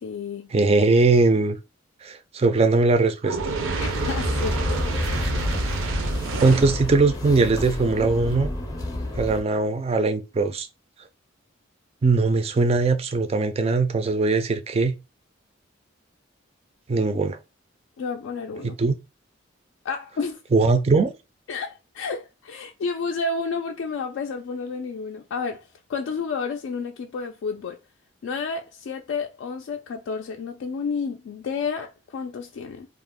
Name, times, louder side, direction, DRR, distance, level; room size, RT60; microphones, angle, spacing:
voice 1, 0.0-0.5 3.8-5.0 18.0-18.7 19.8-20.4 21.5-27.8 28.2-32.9, left 4 dB, 70° left, 0.3 m, -31 dB
voice 2, 0.5-1.6 2.0-3.4 6.4-8.5 9.2-10.7 12.0-15.0 16.9-17.4 18.6-19.0 20.5-21.1, right 3 dB, 30° right, 0.3 m, -20 dB
Fire, 3.2-6.9, right 3 dB, 85° right, 0.5 m, -27 dB
sound 1, 3.7-9.4, left 1 dB, 20° left, 0.5 m, -30 dB
2.4 x 2.0 x 3.5 m
head